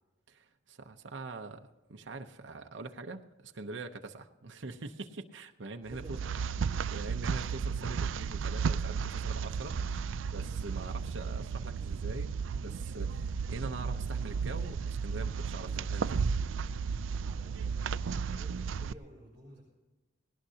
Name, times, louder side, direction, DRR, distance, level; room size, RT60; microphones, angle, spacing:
voice 1, 0.3-6.2 6.9-10.0 10.3-16.3, right 3 dB, 70° right, 0.8 m, -44 dB
voice 2, 5.9-6.6 17.2-19.6, right 1 dB, 10° right, 5.1 m, -54 dB
sound 1, 5.9-18.9, right 6 dB, 90° right, 0.4 m, -34 dB
19.5 x 18.0 x 2.8 m
head